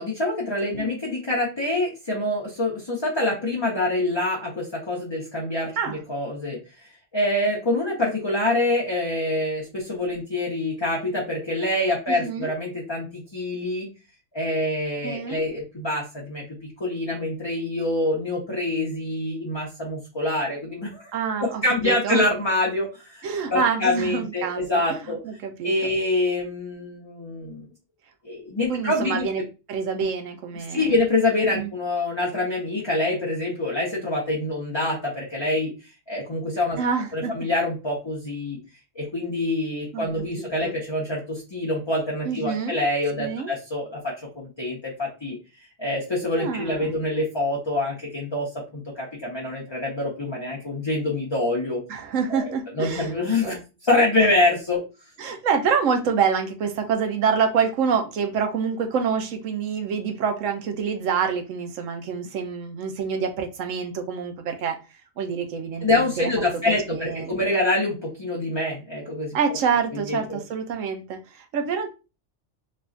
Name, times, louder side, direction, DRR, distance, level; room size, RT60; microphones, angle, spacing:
voice 1, 0.0-6.6 7.1-13.9 14.3-21.1 21.4-25.2 25.6-27.7 28.2-29.4 30.7-36.8 37.1-38.6 38.9-45.4 45.8-51.8 52.3-52.5 52.8-54.8 65.8-69.4 69.9-70.4, left 2 dB, 25° left, -4 dB, 0.8 m, -26 dB
voice 2, 12.1-12.5 15.0-15.4 21.1-22.3 23.2-25.0 25.2-25.9 28.7-29.4 29.7-30.9 31.5-31.7 36.8-37.3 39.9-40.1 40.4-40.8 42.2-42.8 43.2-43.5 46.4-46.9 51.9-53.6 55.2-64.8 65.2-67.3 69.3-71.9, right 6 dB, 90° right, 4 dB, 1.1 m, -27 dB
3.2 x 2.3 x 3.7 m, 0.30 s
omnidirectional pair, 1.3 m